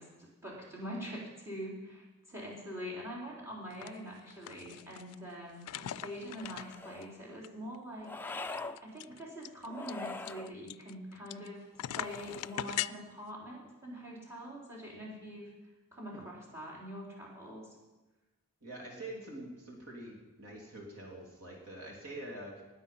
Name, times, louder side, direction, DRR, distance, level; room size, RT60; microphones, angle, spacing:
voice 1, 0.0-8.1 8.3-8.4 8.8-15.5 15.9-17.7, equal, 10° right, -4 dB, 4.2 m, -44 dB
sound 1, 3.7-3.9 4.2-5.1 5.6-7.0 7.4-7.5 7.7-7.8 8.3-11.5 11.8-12.9, left 12 dB, 85° left, 0.3 m, -40 dB
sound 2, 6.3-7.1 8.0-8.8 9.7-10.5 11.9-12.7, left 3 dB, 10° left, 0.4 m, -43 dB
voice 2, 18.6-22.6, right 1 dB, 85° right, -1 dB, 3.2 m, -45 dB
19.5 x 8.2 x 5.6 m, 1.1 s
head